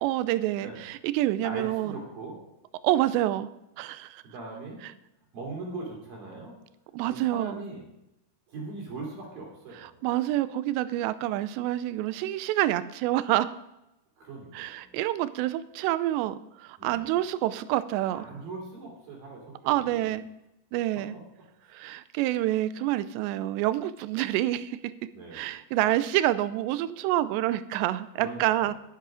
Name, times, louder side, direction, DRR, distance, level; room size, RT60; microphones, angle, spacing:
voice 1, 0.0-2.0 2.8-3.5 3.8-4.2 6.9-7.6 9.8-13.5 14.5-18.3 19.7-20.2 20.7-21.2 21.7-24.9 25.3-28.7, right 14 dB, 80° right, 15 dB, 2.6 m, -27 dB
voice 2, 1.4-2.4 4.2-4.8 5.3-6.5 7.0-7.8 8.5-10.0 14.2-14.9 16.8-17.1 18.1-20.2 20.9-21.0 21.6-21.7 25.1-25.5 28.2-28.7, right 3 dB, 55° right, -1 dB, 4.4 m, -40 dB
11.5 x 10.0 x 5.0 m, 0.88 s
omnidirectional pair, 5.3 m